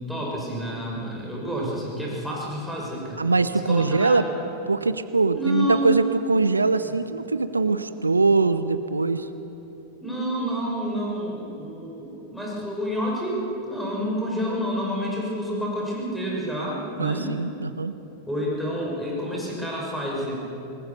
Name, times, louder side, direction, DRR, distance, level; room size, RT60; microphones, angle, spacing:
voice 1, 0.1-3.2 3.6-4.4 5.3-6.0 6.8-7.0 10.0-17.3 18.3-20.3, equal, ahead, -4 dB, 6.1 m, -29 dB
voice 2, 3.2-4.2 4.7-9.3 17.0-17.9, right 3 dB, 80° right, 13 dB, 0.8 m, -22 dB
26.5 x 20.5 x 7.1 m, 3.0 s
figure-of-eight pair, 90°, 0 cm